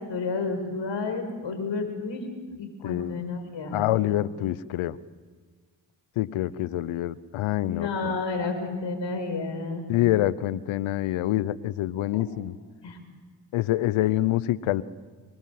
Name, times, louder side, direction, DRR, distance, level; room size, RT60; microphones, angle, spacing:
voice 1, 0.1-2.2 2.6-3.8 7.7-9.9 12.1-12.2 12.8-13.0, left 4 dB, 60° left, 6 dB, 5.8 m, -31 dB
voice 2, 2.8-3.2 3.7-5.0 6.2-8.2 9.9-12.5 13.5-14.8, left 14 dB, 80° left, 19 dB, 1.0 m, -26 dB
26.5 x 23.5 x 7.9 m, 1.5 s
hypercardioid pair, 45°, 48 cm